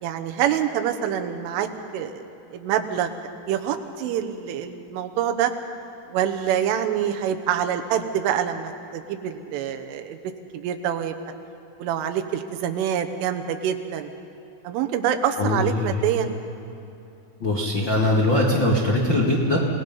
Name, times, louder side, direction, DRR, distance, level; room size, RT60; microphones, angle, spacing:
voice 1, 0.0-1.7 1.9-2.2 2.5-5.5 6.1-10.2 10.5-11.2 11.8-14.1 14.7-16.3, right 9 dB, 90° right, 6 dB, 3.6 m, -26 dB
voice 2, 15.4-16.0 17.4-19.6, left 1 dB, 70° left, -3 dB, 1.1 m, -21 dB
28.0 x 18.5 x 5.5 m, 2.9 s
omnidirectional pair, 5.5 m